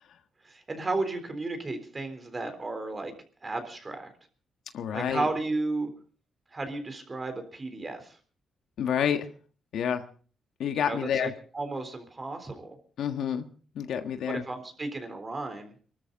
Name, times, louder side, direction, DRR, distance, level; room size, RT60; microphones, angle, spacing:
voice 1, 0.4-3.1 3.4-4.1 4.9-5.9 6.5-8.2 10.8-12.8 14.3-15.7, right 2 dB, 25° right, 7 dB, 3.6 m, -33 dB
voice 2, 4.7-5.3 8.8-9.3 9.7-10.0 10.6-11.3 13.0-13.5 13.7-14.4, left 8 dB, 75° left, 7 dB, 1.6 m, -28 dB
24.0 x 13.0 x 4.0 m, 0.40 s
cardioid pair, 105°, 0 cm